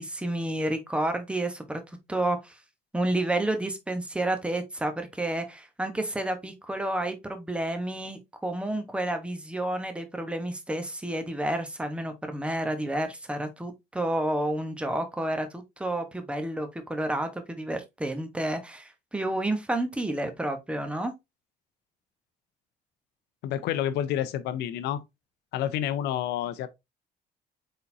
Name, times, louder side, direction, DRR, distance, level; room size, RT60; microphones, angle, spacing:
voice 1, 0.0-1.8 2.1-2.6 2.9-21.1, right 1 dB, 5° right, 0.9 m, -30 dB
voice 2, 23.4-25.0 25.5-26.7, left 11 dB, 80° left, 0.6 m, -29 dB
4.3 x 3.8 x 2.6 m
cardioid pair, 110°, 17 cm